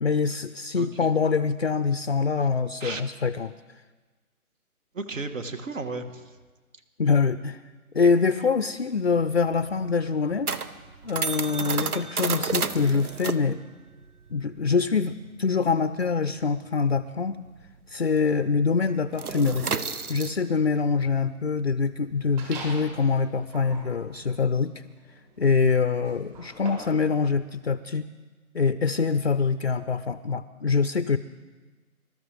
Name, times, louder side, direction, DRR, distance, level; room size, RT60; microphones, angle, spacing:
voice 1, 0.0-3.5 7.0-7.6 7.9-10.5 11.0-13.6 14.3-17.4 17.9-19.7 20.1-24.8 25.4-28.1 28.5-31.2, left 5 dB, 50° left, 12 dB, 0.4 m, -24 dB
voice 2, 0.7-1.1 2.4-2.5 2.8-3.0 4.9-6.4, right 3 dB, 60° right, 8 dB, 1.5 m, -34 dB
sound 1, 8.9-17.9 18.2-18.4 18.7-24.5, right 5 dB, 85° right, 1.1 m, -33 dB
sound 2, 22.4-23.0 23.4-27.1, right 2 dB, 30° right, 5.1 m, -42 dB
26.0 x 13.0 x 3.3 m, 1.3 s
hypercardioid pair, 165°, 44 cm